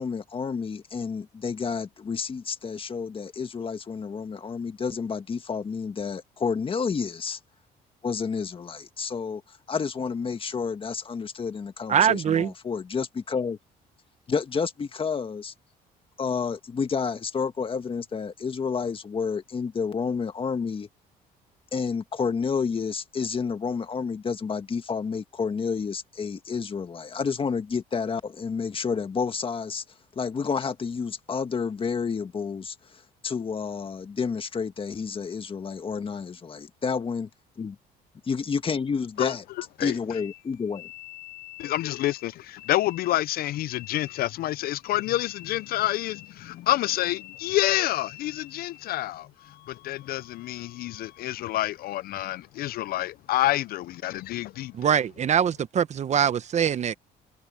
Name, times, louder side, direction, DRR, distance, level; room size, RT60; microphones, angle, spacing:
voice 1, 0.0-7.4 8.0-9.4 9.7-13.6 14.3-15.5 16.2-20.9 21.7-29.8 30.1-32.7 33.2-37.3 37.6-37.7 38.2-39.4 39.8-40.9, left 5 dB, 30° left, 1.7 m, -30 dB
voice 2, 11.9-12.5 54.7-56.9, right 8 dB, 45° right, 0.9 m, -23 dB
sound 1, 40.1-49.0 49.3-51.2, left 16 dB, 85° left, 7.1 m, -47 dB
voice 3, 41.6-49.3 49.8-54.7, left 15 dB, 65° left, 0.4 m, -28 dB
cardioid pair, 110°, 17 cm